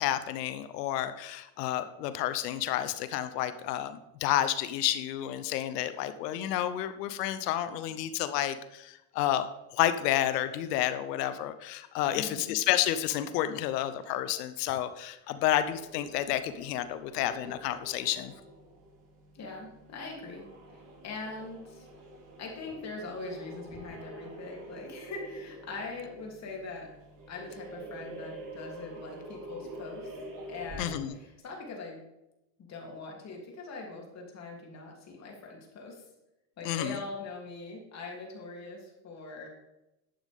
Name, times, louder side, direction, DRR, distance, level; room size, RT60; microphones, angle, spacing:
voice 1, 0.0-9.5 9.7-18.3 30.8-31.2 36.6-37.0, left 12 dB, 75° left, 11 dB, 0.9 m, -30 dB
voice 2, 12.1-12.5 19.3-20.5 20.7-21.9 22.4-26.9 27.3-30.1 30.5-32.0 32.7-36.0 36.6-39.5, left 3 dB, 35° left, 0 dB, 3.0 m, -42 dB
sound 1, 15.6-31.3, right 1 dB, 40° right, 3.3 m, -47 dB
11.5 x 8.1 x 3.6 m, 0.92 s
supercardioid pair, 120°, 48 cm